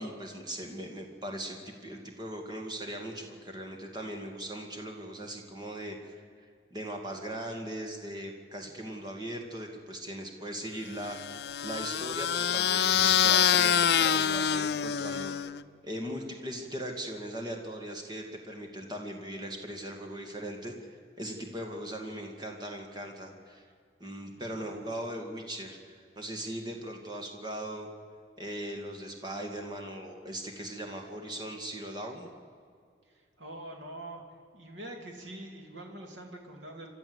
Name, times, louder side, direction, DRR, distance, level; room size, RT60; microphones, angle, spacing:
voice 1, 0.0-6.2 6.7-15.3 15.8-20.9 21.2-23.7 24.0-27.9 28.4-32.3, right 1 dB, 20° right, 3 dB, 2.2 m, -39 dB
sound 1, 11.1-15.6, left 9 dB, 65° left, 0.5 m, -26 dB
voice 2, 24.4-24.7 33.1-34.2 34.5-36.9, right 1 dB, 85° right, 2 dB, 2.7 m, -44 dB
28.5 x 13.0 x 8.0 m, 2.2 s
head